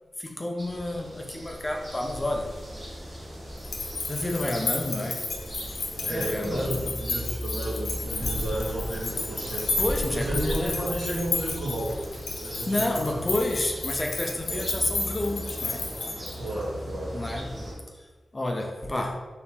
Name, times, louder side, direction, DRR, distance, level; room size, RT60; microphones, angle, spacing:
voice 1, 0.2-3.2 4.1-5.2 6.0-6.9 9.8-10.8 12.5-15.9 17.1-17.5 17.9-19.2, left 1 dB, 20° left, 2 dB, 0.5 m, -30 dB
sound 1, 0.6-17.7, equal, 30° right, 1.0 m, -37 dB
sound 2, 3.6-16.6, left 3 dB, 70° left, 0.8 m, -33 dB
voice 2, 6.0-9.8 10.1-11.9 12.4-13.2 13.5-13.6 16.4-17.1 17.6-17.8, right 1 dB, 80° right, -5 dB, 1.3 m, -32 dB
4.1 x 2.9 x 4.0 m, 1.3 s
wide cardioid pair, 140°, 0 cm